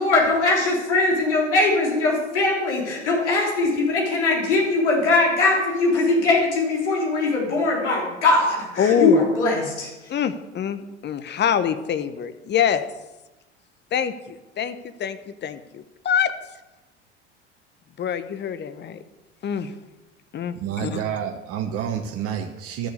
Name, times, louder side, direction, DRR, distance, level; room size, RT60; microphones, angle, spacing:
voice 1, 0.0-9.9, left 3 dB, 75° left, -3 dB, 3.6 m, -21 dB
voice 2, 8.8-9.2 10.1-12.9 13.9-16.3 18.0-19.0 19.4-19.7 20.3-21.0, left 8 dB, 30° left, 12 dB, 1.0 m, -25 dB
voice 3, 20.5-22.9, right 8 dB, 40° right, 4 dB, 1.1 m, -29 dB
13.5 x 6.9 x 6.5 m, 1.1 s
figure-of-eight pair, 75°, 35 cm